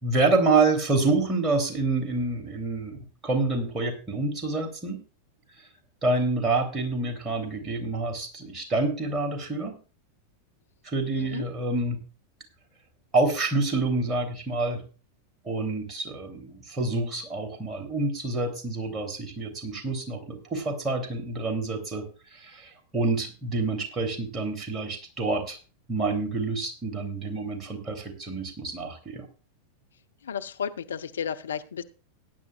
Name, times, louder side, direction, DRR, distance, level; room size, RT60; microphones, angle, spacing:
voice 1, 0.0-5.0 5.6-5.7 6.0-9.8 10.8-12.0 13.1-14.8 15.4-22.0 22.3-25.6 25.9-29.3, right 3 dB, 25° right, 4 dB, 3.2 m, -27 dB
voice 2, 30.2-31.8, left 7 dB, 65° left, 10 dB, 0.7 m, -33 dB
17.5 x 10.0 x 2.4 m, 0.35 s
figure-of-eight pair, 90°, 0 cm